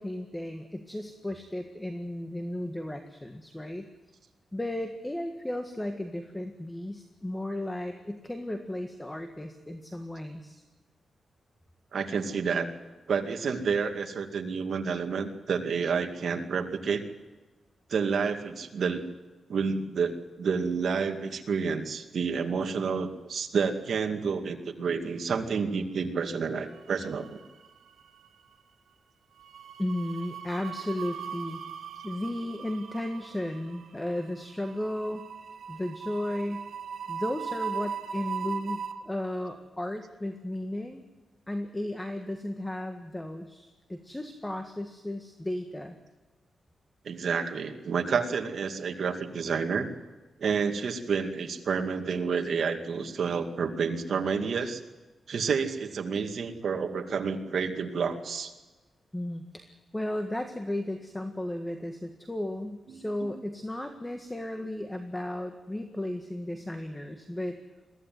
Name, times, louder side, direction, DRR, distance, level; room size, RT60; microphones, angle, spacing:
voice 1, 0.0-3.9 4.5-10.6 29.8-31.6 32.0-35.3 35.7-36.7 37.1-41.0 41.5-46.0 59.1-59.6 59.9-67.5, left 1 dB, 10° left, 6 dB, 1.7 m, -34 dB
voice 2, 11.9-12.7 13.1-17.0 17.9-19.0 19.5-27.4 47.0-49.9 50.4-54.8 55.3-58.5 62.9-63.0, right 5 dB, 65° right, 5 dB, 2.2 m, -29 dB
sound 1, 26.9-27.7 27.9-28.2 29.4-38.9, right 6 dB, 80° right, 2.1 m, -39 dB
22.5 x 15.5 x 9.5 m, 1.2 s
wide cardioid pair, 110°, 0 cm